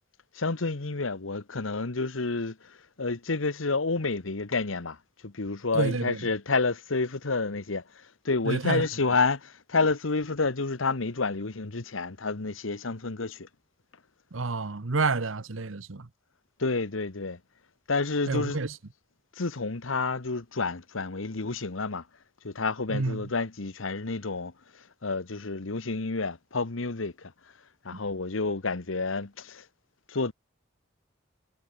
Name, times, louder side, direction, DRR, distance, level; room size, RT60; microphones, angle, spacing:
voice 1, 0.4-2.6 3.0-5.0 5.2-7.8 8.2-13.5 16.6-17.4 17.9-18.6 19.4-22.0 22.4-24.5 25.0-27.3 27.8-29.6 30.1-30.3, left 3 dB, 90° left, 1.3 m, -29 dB
voice 2, 5.7-6.3 8.4-8.9 14.3-16.1 18.3-18.8 22.9-23.3, right 3 dB, 85° right, 1.0 m, -29 dB
head